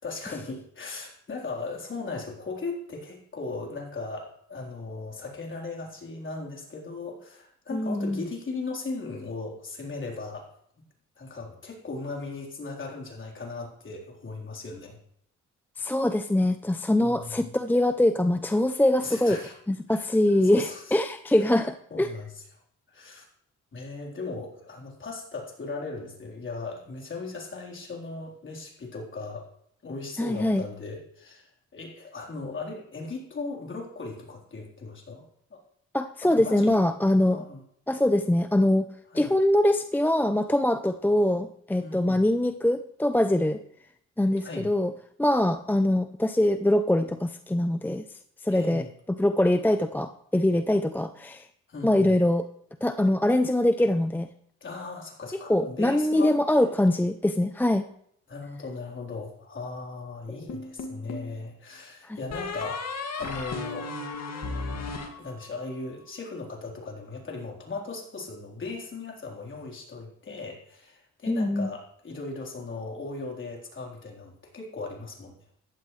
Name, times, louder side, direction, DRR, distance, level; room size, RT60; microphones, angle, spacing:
voice 1, 0.0-10.5 11.2-15.0 17.0-17.5 19.0-19.6 19.9-20.1 20.4-21.0 21.4-21.5 21.9-22.3 22.9-23.3 23.7-29.5 29.8-35.2 35.5-35.6 36.2-36.7 37.2-37.6 39.1-39.3 41.8-42.2 44.4-44.7 48.5-48.9 51.7-52.1 54.6-56.7 58.3-63.9 65.2-75.4, left 3 dB, 40° left, -1 dB, 3.9 m, -38 dB
voice 2, 7.7-8.2 15.8-19.4 19.7-22.1 30.2-30.6 35.9-37.4 37.9-38.9 39.1-43.6 44.2-44.9 45.2-48.0 48.4-51.5 51.8-52.5 52.8-54.3 55.3-57.8 62.1-62.2 71.3-71.7, left 1 dB, 5° left, 9 dB, 0.5 m, -23 dB
sound 1, 60.5-61.3 62.3-65.8, left 3 dB, 60° left, 2.2 m, -35 dB
15.5 x 12.0 x 3.2 m, 0.68 s
cardioid pair, 90°, 30 cm